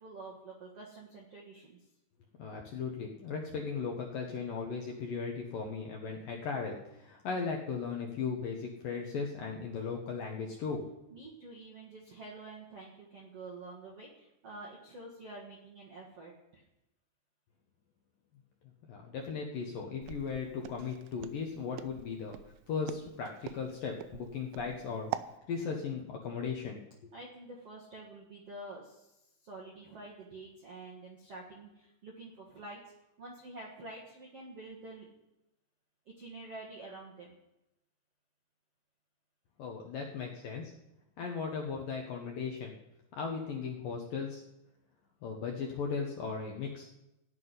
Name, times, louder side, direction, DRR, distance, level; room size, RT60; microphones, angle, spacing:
voice 1, 0.0-1.9 11.1-16.6 27.1-32.8 33.2-35.1 36.0-37.3, right 2 dB, 55° right, -3 dB, 1.7 m, -48 dB
voice 2, 2.4-10.9 18.8-22.4 22.7-25.1 25.5-26.8 39.6-40.7 41.2-42.7 43.1-44.4 45.2-46.9, left 5 dB, 70° left, 1 dB, 2.2 m, -37 dB
Walk footsteps, 20.0-25.3, right 13 dB, 90° right, 3.0 m, -43 dB
15.5 x 6.0 x 9.5 m, 0.91 s
omnidirectional pair, 5.3 m